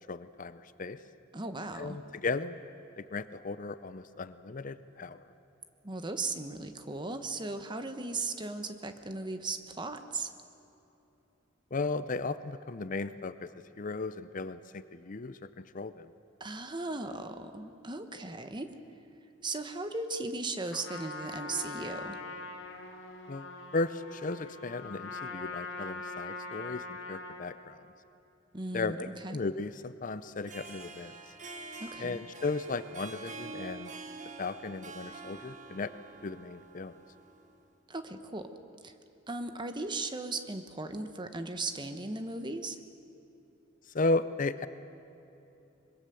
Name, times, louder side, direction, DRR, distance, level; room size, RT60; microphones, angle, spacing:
voice 1, 0.1-1.0 1.7-2.6 3.0-5.2 11.7-16.1 23.3-27.9 28.7-31.1 32.0-33.9 34.4-35.9 36.2-36.9 43.9-44.7, left 3 dB, 40° left, 13 dB, 0.6 m, -35 dB
voice 2, 1.3-2.0 5.8-10.3 16.4-18.7 19.4-22.2 28.5-29.0 29.2-29.4 31.8-32.2 37.9-38.5 38.8-38.9 39.3-42.8, right 3 dB, 25° right, 8 dB, 1.2 m, -37 dB
Trumpet, 20.7-27.5, left 3 dB, 75° left, 2.8 m, -42 dB
Harp, 30.3-37.6, right 3 dB, 40° right, 1.4 m, -46 dB
25.0 x 22.0 x 7.0 m, 2.9 s
head